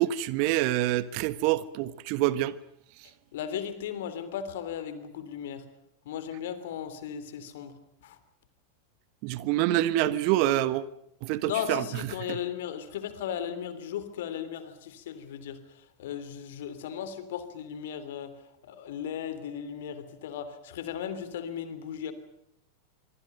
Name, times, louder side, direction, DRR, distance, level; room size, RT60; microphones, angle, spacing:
voice 1, 0.0-2.6 9.2-10.9 11.2-11.8, right 14 dB, 45° right, 1.2 m, -26 dB
voice 2, 3.3-5.6 6.0-7.7 8.0-8.2 11.4-18.3 18.6-22.1, left 9 dB, 55° left, 3.1 m, -36 dB
25.5 x 24.5 x 6.8 m
figure-of-eight pair, 90°, 0 cm